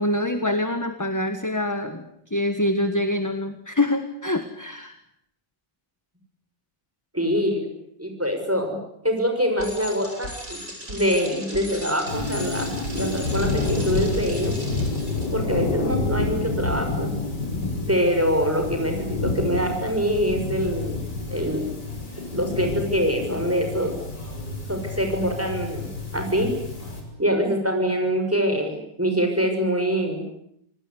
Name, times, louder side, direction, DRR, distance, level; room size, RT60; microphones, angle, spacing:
voice 1, 0.0-2.0 2.3-5.0, left 1 dB, 10° left, 8 dB, 1.4 m, -25 dB
voice 2, 7.1-7.7 8.0-10.6 10.9-14.5 15.3-17.2 17.9-21.0 21.3-21.7 22.3-23.9 24.7-26.5 27.2-30.2, equal, 5° right, 4 dB, 6.5 m, -24 dB
Bicycle, 9.6-15.3, equal, 50° right, 7.3 m, -37 dB
sound 1, 12.1-27.0, left 3 dB, 70° left, 6.7 m, -29 dB
27.5 x 19.0 x 10.0 m, 0.74 s
omnidirectional pair, 1.9 m